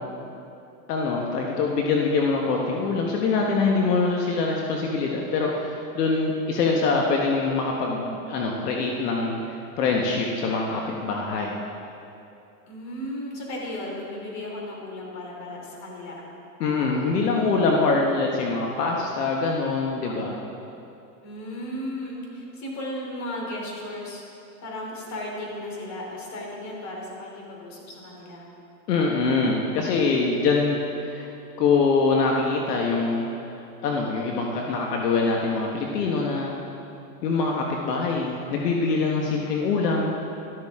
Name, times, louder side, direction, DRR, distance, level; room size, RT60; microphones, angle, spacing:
voice 1, 0.9-11.6 16.6-20.4 28.9-30.8 31.0-31.3 31.6-33.3 33.8-36.5 37.2-40.1, left 4 dB, 75° left, -1 dB, 1.5 m, -24 dB
voice 2, 12.7-16.2 17.0-17.3 20.0-20.4 21.2-24.2 24.6-28.4, left 1 dB, 35° left, -2 dB, 3.3 m, -35 dB
13.0 x 12.5 x 3.7 m, 2.7 s
supercardioid pair, 130°, 47 cm